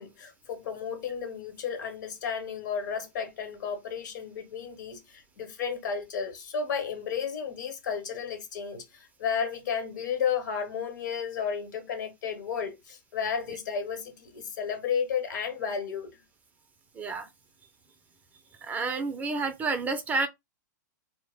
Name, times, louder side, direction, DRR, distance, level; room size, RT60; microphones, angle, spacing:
voice 1, 0.0-16.2, left 7 dB, 70° left, 1.0 m, -33 dB
voice 2, 17.0-17.3 18.6-20.3, right 3 dB, 15° right, 0.3 m, -29 dB
2.0 x 2.0 x 3.4 m
hypercardioid pair, 125°, 10 cm